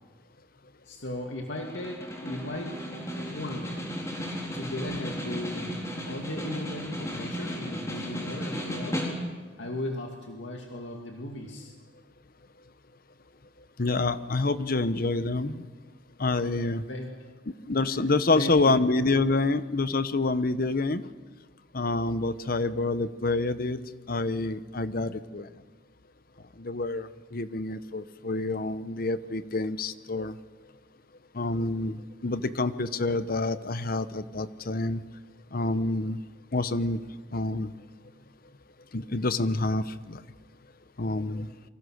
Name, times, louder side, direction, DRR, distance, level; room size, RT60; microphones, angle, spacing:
voice 1, 0.9-2.8 3.2-3.7 4.5-9.1 9.6-11.7 16.6-17.2 18.0-18.1 18.3-18.9, left 1 dB, 75° left, 1 dB, 2.5 m, -36 dB
Snare drum, 1.6-9.5, equal, 15° left, 3.9 m, -35 dB
voice 2, 13.8-15.6 16.2-16.8 17.7-21.0 21.7-23.8 24.1-25.5 26.6-30.3 31.3-35.0 35.5-36.2 36.5-37.0 37.3-37.8 38.9-40.2 41.0-41.5, left 2 dB, 50° left, 13 dB, 0.9 m, -27 dB
29.0 x 23.5 x 6.5 m, 1.4 s
head